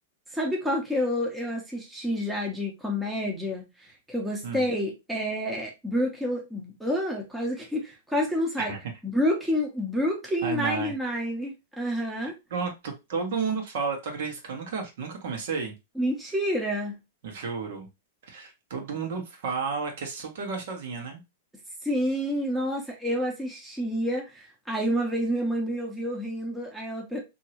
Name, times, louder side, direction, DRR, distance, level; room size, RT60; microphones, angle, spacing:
voice 1, 0.3-8.7 9.0-12.3 16.0-17.0 21.8-27.2, equal, 5° right, 0.8 m, -29 dB
voice 2, 8.6-8.9 10.4-10.9 12.5-15.7 17.2-17.9 18.2-21.2, right 5 dB, 65° right, 1.1 m, -32 dB
2.9 x 2.7 x 2.9 m
supercardioid pair, 150°, 0 cm